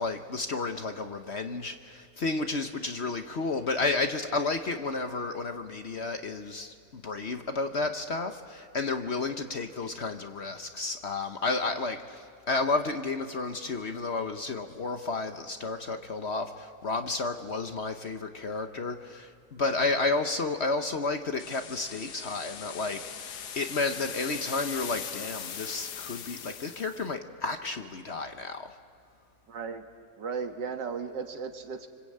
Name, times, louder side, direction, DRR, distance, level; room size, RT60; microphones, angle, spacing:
voice 1, 0.0-28.7, left 3 dB, 45° left, 7 dB, 1.1 m, -32 dB
sound 1, 21.4-27.1, left 7 dB, 70° left, 1.6 m, -40 dB
voice 2, 29.5-29.8 30.2-31.9, right 5 dB, 80° right, 6 dB, 2.2 m, -35 dB
25.5 x 25.5 x 8.7 m, 2.1 s
omnidirectional pair, 1.9 m